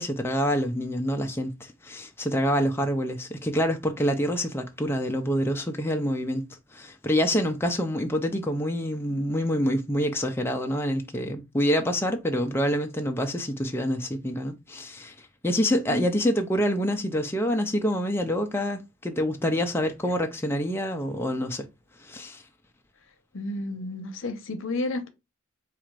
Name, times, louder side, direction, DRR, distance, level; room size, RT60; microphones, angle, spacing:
voice 1, 0.0-6.5 6.7-21.7 22.0-22.4, equal, 10° left, 0.5 m, -27 dB
voice 2, 23.3-25.1, left 2 dB, 70° left, 0.8 m, -31 dB
4.1 x 2.5 x 4.6 m
head